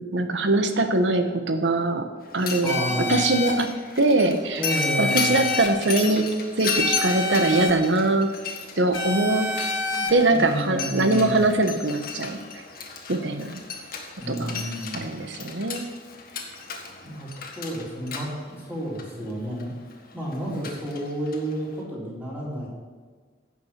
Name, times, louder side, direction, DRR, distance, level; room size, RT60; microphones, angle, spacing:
voice 1, 0.0-2.1 2.3-2.8 3.1-4.6 5.0-8.3 8.8-9.5 10.1-12.6 13.1-13.6 14.3-14.7 14.9-15.9, right 2 dB, 80° right, 7 dB, 1.1 m, -22 dB
Mechanisms, 2.2-21.8, left 6 dB, 55° left, 1.6 m, -35 dB
voice 2, 2.6-3.2 4.6-5.3 9.9-11.3 14.2-15.1 17.0-19.7 20.1-22.7, equal, 10° right, -7 dB, 3.9 m, -31 dB
sound 1, 2.7-3.5 4.7-5.7 6.8-7.7 8.9-10.1, left 3 dB, 80° left, 2.3 m, -27 dB
15.5 x 6.2 x 5.9 m, 1.5 s
head